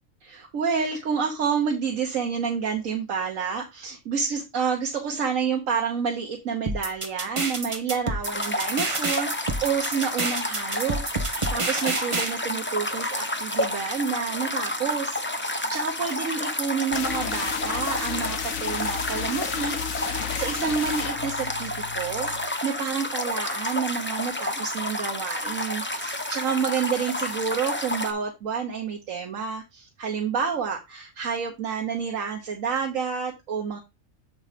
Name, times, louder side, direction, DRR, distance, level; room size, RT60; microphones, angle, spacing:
voice 1, 0.2-22.3 22.6-33.8, right 6 dB, 85° right, 2 dB, 1.5 m, -29 dB
sound 1, 6.7-12.3, right 2 dB, 25° right, 1.0 m, -28 dB
sound 2, 8.2-28.1, left 1 dB, 10° left, 0.6 m, -30 dB
sound 3, 16.9-22.6, left 9 dB, 80° left, 1.1 m, -33 dB
7.7 x 3.9 x 5.0 m, 0.22 s
omnidirectional pair, 1.4 m